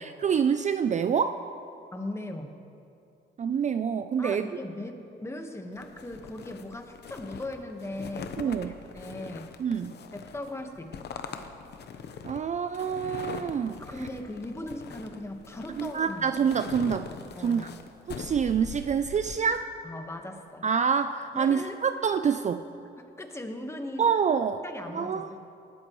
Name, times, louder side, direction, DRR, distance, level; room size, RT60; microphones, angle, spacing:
voice 1, 0.0-1.4 3.4-4.4 8.4-8.7 9.6-9.9 12.2-13.8 15.8-17.1 17.4-17.7 18.1-19.7 20.6-22.6 24.0-24.6 24.9-25.4, right 7 dB, 35° right, 9 dB, 0.4 m, -26 dB
voice 2, 1.9-2.5 4.2-8.5 8.9-9.5 10.1-11.2 13.9-16.2 17.4-17.7 19.8-20.6 21.3-21.8 23.2-24.0 24.6-25.4, left 1 dB, 15° left, 4 dB, 1.4 m, -38 dB
sound 1, 5.8-19.4, left 6 dB, 60° left, 0.9 m, -42 dB
19.0 x 13.0 x 3.1 m, 2.6 s
cardioid pair, 90°, 20 cm